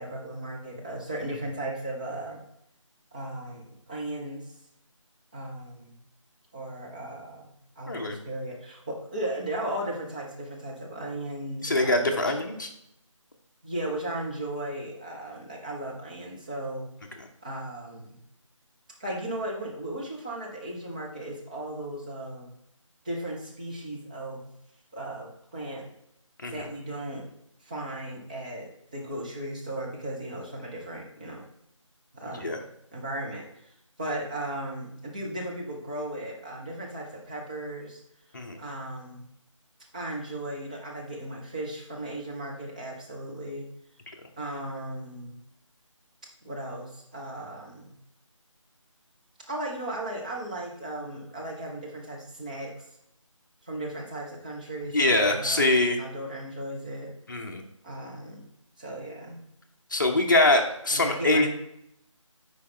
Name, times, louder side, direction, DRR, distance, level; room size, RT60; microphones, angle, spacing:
voice 1, 0.0-2.4 3.1-4.5 5.3-6.0 6.5-7.5 7.8-12.3 13.6-16.9 17.4-18.2 19.0-22.5 23.0-24.6 24.9-25.9 26.5-27.3 27.6-31.5 32.1-32.6 32.9-33.6 34.0-38.0 38.6-39.3 39.9-43.7 44.4-45.4 46.4-48.0 49.5-52.7 53.6-57.1 57.8-58.5 58.8-59.4 60.9-61.5, right 1 dB, 15° right, -3 dB, 0.8 m, -36 dB
voice 2, 7.9-8.2 11.6-12.7 26.4-26.7 32.3-32.6 38.3-38.6 54.9-56.0 57.3-57.6 59.9-61.5, left 2 dB, 35° left, 3 dB, 0.9 m, -23 dB
8.3 x 4.9 x 3.3 m, 0.76 s
figure-of-eight pair, 165°, 17 cm